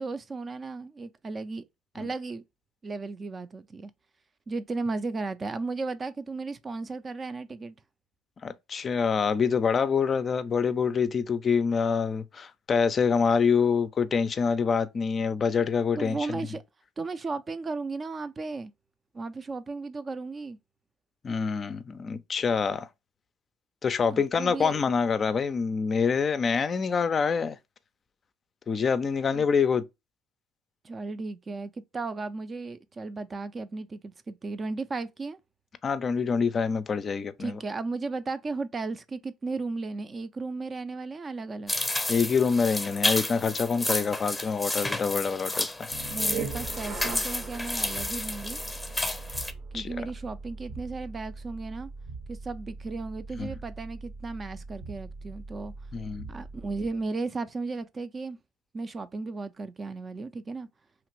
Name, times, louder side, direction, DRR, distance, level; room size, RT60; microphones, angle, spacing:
voice 1, 0.0-1.6 1.9-2.4 2.8-3.9 4.5-7.8 16.0-16.6 17.0-18.7 19.1-20.6 24.1-24.7 29.3-29.5 30.8-35.4 37.4-41.7 46.1-48.6 49.7-51.9 52.3-55.7 56.3-58.4 58.7-60.7, right 3 dB, 30° right, 0.4 m, -35 dB
voice 2, 8.4-16.4 21.2-22.9 23.8-27.6 28.7-29.8 35.8-37.6 42.1-45.9 49.7-49.9 53.4-53.5 55.9-56.3, left 5 dB, 40° left, 0.4 m, -26 dB
sound 1, 41.7-49.5, left 2 dB, 5° left, 0.7 m, -31 dB
sound 2, 45.9-57.0, right 4 dB, 60° right, 0.7 m, -40 dB
3.0 x 2.5 x 3.0 m
supercardioid pair, 85°, 0 cm